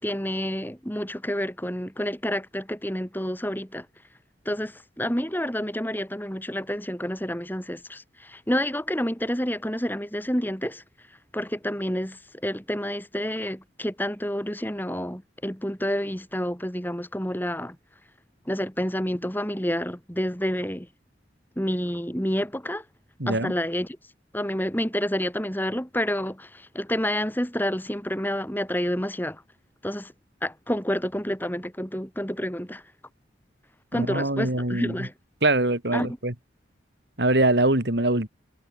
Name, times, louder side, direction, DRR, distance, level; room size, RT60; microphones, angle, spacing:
voice 1, 0.0-3.9 4.5-10.8 11.3-17.8 18.5-20.9 21.6-22.8 23.3-24.0 24.3-29.4 29.8-30.1 30.4-32.8 33.9-35.1 35.9-36.2, equal, 10° left, 5.7 m, -29 dB
voice 2, 23.2-23.5 33.9-35.0 35.4-36.3 37.2-38.3, right 2 dB, 60° right, 2.9 m, -23 dB
head